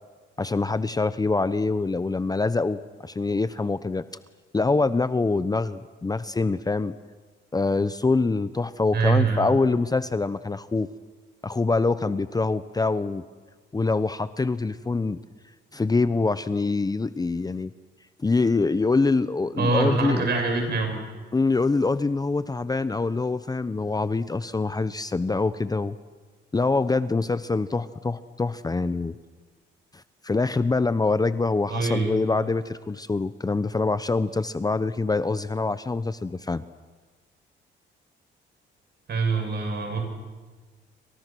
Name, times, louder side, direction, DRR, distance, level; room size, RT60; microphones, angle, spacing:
voice 1, 0.4-4.0 4.5-6.9 7.5-10.9 11.4-13.2 13.7-15.2 15.7-17.7 18.2-20.3 21.3-26.0 26.5-29.2 29.9-36.6, left 3 dB, 20° left, 13 dB, 0.8 m, -25 dB
voice 2, 8.9-9.5 19.6-21.0 31.7-32.1 39.1-40.0, right 4 dB, 55° right, 3 dB, 7.7 m, -24 dB
29.5 x 25.0 x 6.3 m, 1.4 s
cardioid pair, 90°, 20 cm